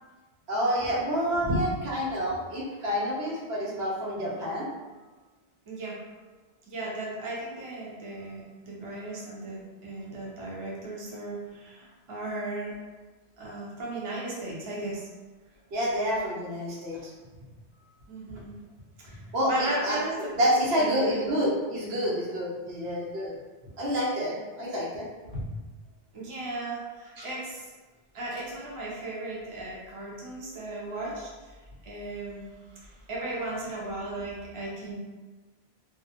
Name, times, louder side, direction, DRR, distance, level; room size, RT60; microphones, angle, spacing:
voice 1, 0.5-4.6 15.7-17.0 19.3-20.0 20.4-23.3 23.8-25.1 25.3-25.4 27.2-27.3, equal, 85° right, -5 dB, 1.0 m, -28 dB
voice 2, 1.4-1.9 2.3-2.4 5.7-6.0 6.7-12.7 13.4-15.0 18.1-18.6 19.0-19.1 19.4-20.5 20.8-21.2 26.1-27.7 28.1-31.5 31.9-32.5 32.8-34.9, right 1 dB, 35° right, -5 dB, 0.6 m, -35 dB
2.3 x 2.1 x 2.8 m, 1.3 s
omnidirectional pair, 1.0 m